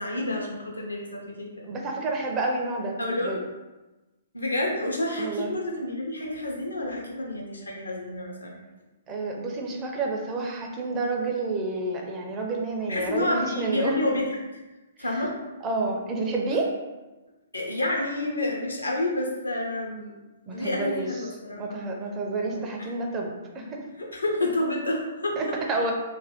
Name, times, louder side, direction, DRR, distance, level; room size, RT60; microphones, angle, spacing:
voice 1, 0.0-1.5 3.0-3.4 4.3-8.6 12.9-14.4 15.0-15.4 17.5-20.1 20.5-21.8 24.0-25.4, left 1 dB, 80° left, -1 dB, 0.6 m, -29 dB
voice 2, 1.6-3.4 5.2-5.5 9.1-13.9 15.6-16.7 20.5-21.1 21.6-23.8 25.4-25.9, right 3 dB, 25° right, 0 dB, 0.5 m, -29 dB
2.5 x 2.2 x 3.4 m, 1.1 s
figure-of-eight pair, 120°, 0 cm